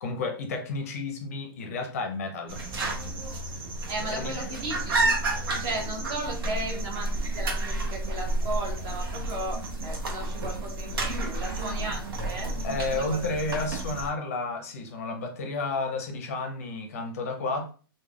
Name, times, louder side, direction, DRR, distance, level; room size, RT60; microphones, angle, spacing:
voice 1, 0.0-2.6 4.0-4.5 12.6-17.7, left 3 dB, 40° left, 0.5 m, -31 dB
sound 1, 2.5-14.1, right 2 dB, 70° right, 0.8 m, -31 dB
voice 2, 3.9-5.1 5.6-12.6 12.9-13.2, right 1 dB, 20° right, 0.5 m, -35 dB
3.2 x 2.1 x 2.3 m
hypercardioid pair, 180°, 13 cm